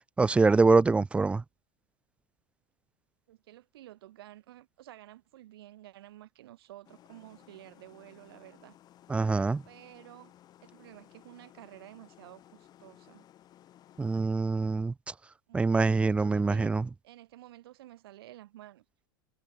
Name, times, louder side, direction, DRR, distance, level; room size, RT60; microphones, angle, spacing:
voice 1, 0.2-1.4 9.1-9.6 14.0-14.9 15.5-16.8, right 3 dB, 10° right, 0.7 m, -24 dB
voice 2, 3.3-8.8 9.6-10.3 10.6-13.3 15.5-16.7 17.0-18.8, right 14 dB, 75° right, 6.2 m, -51 dB
sound 1, 6.8-14.2, left 12 dB, 30° left, 5.4 m, -58 dB
supercardioid pair, 135°, 13 cm